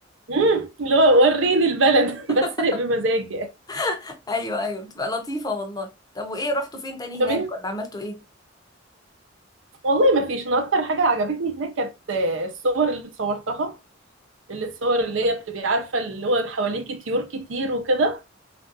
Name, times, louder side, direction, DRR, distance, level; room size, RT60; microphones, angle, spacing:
voice 1, 0.3-3.5 7.2-7.5 9.8-13.8 14.5-18.2, right 2 dB, 75° right, 0.7 m, -22 dB
voice 2, 3.7-8.2, left 2 dB, 20° left, 0.7 m, -29 dB
3.3 x 2.5 x 2.6 m
head